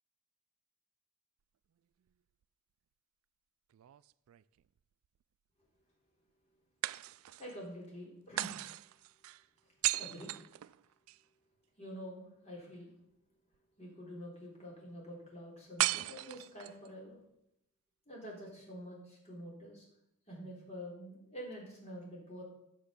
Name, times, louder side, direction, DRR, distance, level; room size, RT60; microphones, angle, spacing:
sound 1, 3.7-4.8 6.8-7.6 8.4-11.2 15.8-16.9, right 16 dB, 70° right, 0.3 m, -37 dB
voice 1, 7.4-8.5 9.8-10.3 11.8-12.9 13.8-17.2 18.1-19.9 20.3-22.4, equal, 30° left, -3 dB, 3.6 m, -47 dB
9.8 x 7.0 x 6.7 m, 0.82 s
head